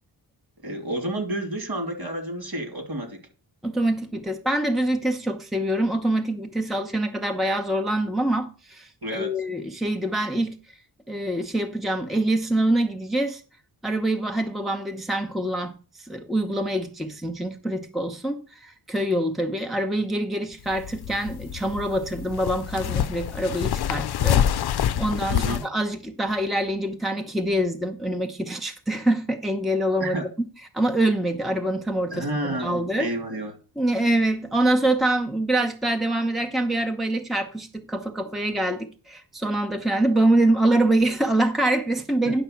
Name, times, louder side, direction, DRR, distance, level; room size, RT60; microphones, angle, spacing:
voice 1, 0.6-3.2 9.0-9.3 25.3-25.6 30.0-30.3 32.1-33.6 42.2-42.3, right 1 dB, 55° right, 3.0 m, -30 dB
voice 2, 3.6-10.6 11.1-13.4 13.8-15.8 16.1-30.1 30.7-33.1 33.8-42.4, right 1 dB, ahead, 0.9 m, -25 dB
sound 1, 20.5-25.6, left 10 dB, 60° left, 0.5 m, -26 dB
10.0 x 5.8 x 5.8 m
cardioid pair, 80°, 44 cm